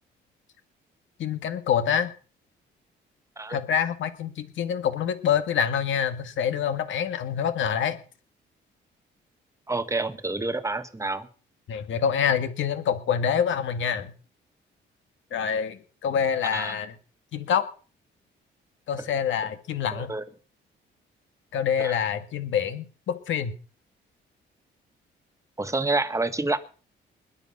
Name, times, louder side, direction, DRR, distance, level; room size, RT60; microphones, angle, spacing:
voice 1, 1.2-2.1 3.5-8.0 11.7-14.1 15.3-16.9 17.3-17.6 18.9-20.1 21.5-23.5, left 8 dB, 75° left, 9 dB, 2.0 m, -26 dB
voice 2, 9.7-11.3 16.5-16.7 19.9-20.2 21.8-22.0 25.6-26.6, right 2 dB, 15° right, 11 dB, 1.6 m, -28 dB
21.0 x 7.4 x 5.7 m, 0.38 s
cardioid pair, 90°, 20 cm